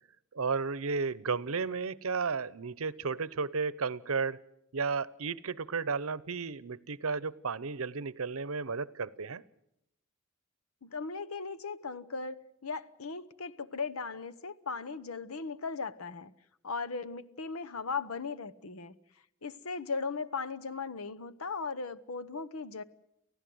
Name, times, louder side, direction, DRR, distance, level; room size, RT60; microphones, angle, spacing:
voice 1, 0.3-4.4 4.7-9.4, right 4 dB, 75° right, 20 dB, 0.8 m, -33 dB
voice 2, 10.8-12.4 12.6-16.3 16.6-18.9 19.4-22.8, left 4 dB, 80° left, 13 dB, 1.0 m, -37 dB
29.5 x 15.5 x 7.8 m, 0.78 s
head